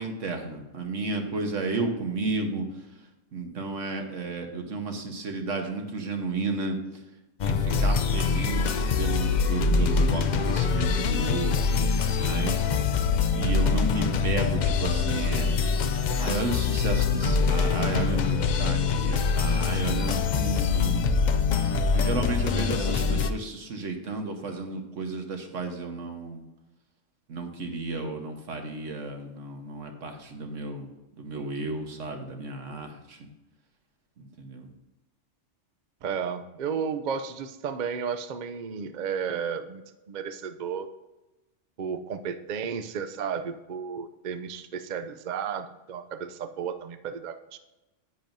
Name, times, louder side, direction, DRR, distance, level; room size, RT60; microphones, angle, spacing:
voice 1, 0.0-2.7 3.3-6.8 7.4-12.7 13.3-15.6 16.2-21.1 21.9-26.4 27.3-30.9 31.2-33.3 34.2-34.7, right 3 dB, 75° right, 4 dB, 1.5 m, -33 dB
sound 1, 7.4-23.3, left 5 dB, 70° left, 0.4 m, -24 dB
voice 2, 36.0-39.8 40.1-40.9 41.8-47.6, right 7 dB, 55° right, 9 dB, 0.5 m, -33 dB
10.0 x 8.9 x 2.7 m, 1.0 s
omnidirectional pair, 1.3 m